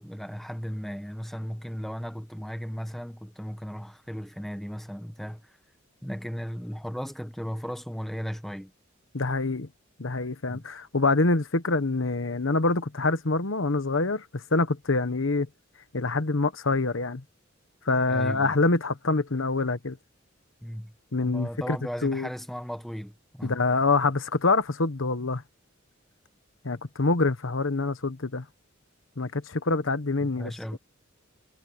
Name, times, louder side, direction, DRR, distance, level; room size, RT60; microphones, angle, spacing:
voice 1, 0.0-5.5 6.0-8.7 10.5-10.6 18.1-18.5 20.6-20.9 21.2-23.5 30.2-30.8, equal, ahead, 1.5 m, -36 dB
voice 2, 9.1-9.7 10.0-15.5 15.9-17.2 17.8-20.0 21.1-21.8 22.0-22.3 23.4-25.4 26.6-28.4 29.2-30.8, left 3 dB, 75° left, 1.2 m, -25 dB
head